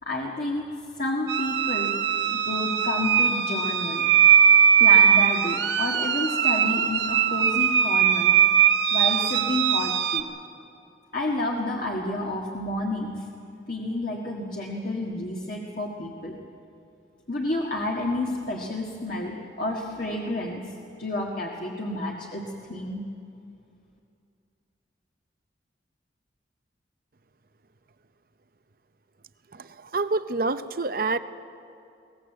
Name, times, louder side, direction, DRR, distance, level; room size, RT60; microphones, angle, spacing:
voice 1, 0.0-0.6 1.0-1.9 2.3-4.1 4.8-8.3 8.9-10.3 11.1-13.2 13.7-16.4 17.3-23.0, left 2 dB, 50° left, -2 dB, 1.7 m, -30 dB
sound 1, 1.3-10.2, right 8 dB, 80° right, 1.0 m, -20 dB
voice 2, 29.5-31.2, right 3 dB, 50° right, 12 dB, 0.7 m, -27 dB
22.5 x 18.5 x 7.9 m, 2.6 s
head